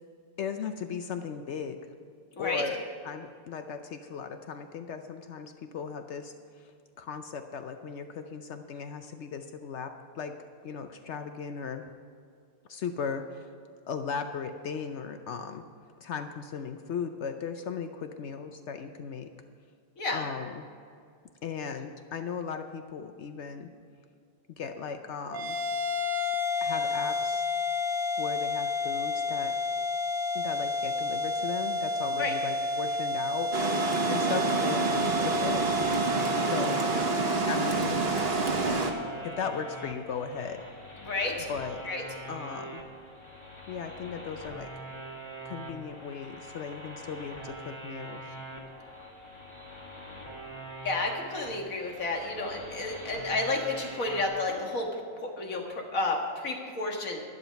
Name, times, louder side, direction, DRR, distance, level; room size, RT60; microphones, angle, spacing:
voice 1, 0.4-1.8 2.4-6.7 7.0-10.3 10.6-11.8 12.7-13.5 13.9-15.6 16.0-19.3 20.1-20.7 21.4-23.7 24.5-25.6 26.6-27.5 28.2-29.5 30.3-33.5 34.1-35.6 36.4-36.9 37.5-38.0 39.2-40.6 41.5-41.8 42.3-42.8 43.7-44.7 45.4-48.2, left 6 dB, 90° left, 7 dB, 0.6 m, -37 dB
sound 1, 25.3-39.9, left 2 dB, 10° right, 2.9 m, -31 dB
Water, 33.5-38.9, right 3 dB, 40° right, 1.2 m, -28 dB
sound 2, 34.3-54.3, right 1 dB, 15° left, 1.7 m, -44 dB
voice 2, 41.0-41.5 41.9-42.0 50.8-54.9 55.2-57.2, left 2 dB, 45° left, 1 dB, 2.1 m, -31 dB
12.0 x 11.0 x 5.8 m, 2.3 s
omnidirectional pair, 2.0 m